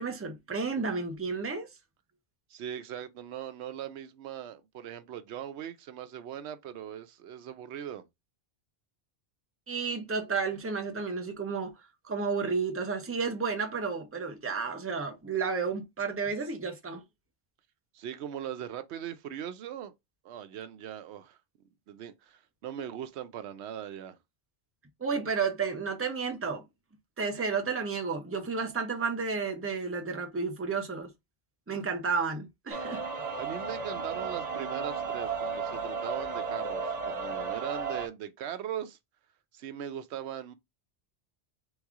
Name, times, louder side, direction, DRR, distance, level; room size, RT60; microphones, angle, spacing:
voice 1, 0.0-1.7 9.7-11.7 12.0-17.0 25.0-26.7 27.2-31.1 31.7-33.0, right 5 dB, 15° right, 0.6 m, -32 dB
voice 2, 2.5-8.0 17.9-19.9 20.2-21.4 21.9-24.2 33.4-39.0 39.5-40.5, right 9 dB, 85° right, 0.9 m, -40 dB
sound 1, 32.7-38.1, right 5 dB, 40° right, 0.9 m, -34 dB
3.5 x 3.1 x 3.6 m
omnidirectional pair, 1.1 m